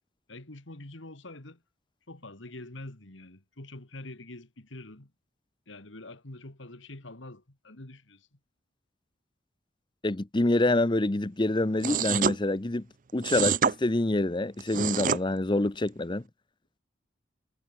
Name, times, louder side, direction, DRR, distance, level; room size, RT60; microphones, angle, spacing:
voice 1, 0.3-1.6 2.1-5.1 5.7-8.4, left 2 dB, 70° left, 2.3 m, -45 dB
voice 2, 10.0-12.9 13.1-16.2, left 2 dB, 25° left, 0.7 m, -26 dB
sound 1, 11.8-12.4 13.2-13.7 14.6-15.2, right 7 dB, 40° right, 0.5 m, -26 dB
head